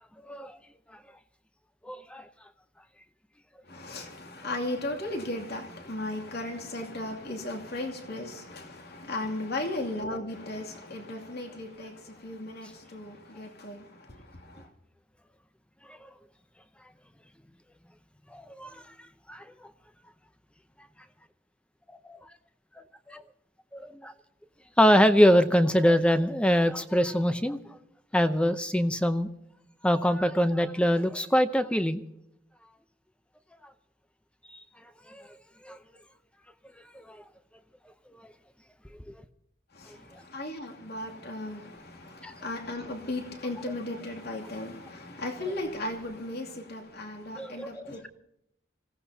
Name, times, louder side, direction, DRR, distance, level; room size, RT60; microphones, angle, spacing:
voice 1, 0.3-0.6 1.8-2.3 15.9-16.0 18.3-18.8 19.3-19.4 22.0-22.2 23.1-23.2 23.7-24.1 24.8-27.6 28.1-29.3 29.8-32.0 35.1-35.2 35.6-35.8 36.9-37.2 42.2-42.3 47.4-48.1, equal, 5° left, 0.7 m, -24 dB
voice 2, 3.7-14.7 39.7-48.1, left 1 dB, 60° left, 2.6 m, -36 dB
26.0 x 16.0 x 2.8 m
head